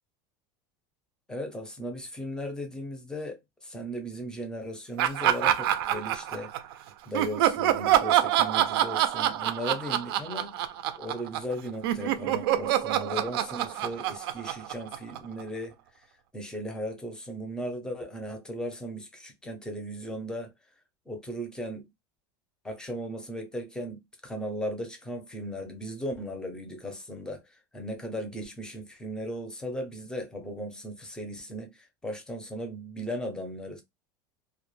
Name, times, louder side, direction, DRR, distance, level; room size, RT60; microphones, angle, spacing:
voice 1, 1.3-6.5 7.1-10.6 11.0-16.1 16.3-20.5 21.1-21.8 22.6-33.8, equal, 5° left, 0.5 m, -37 dB
Laughter, 5.0-6.7 7.1-11.5 11.8-15.4, right 12 dB, 90° right, 0.4 m, -26 dB
2.1 x 2.1 x 3.1 m
supercardioid pair, 150°, 12 cm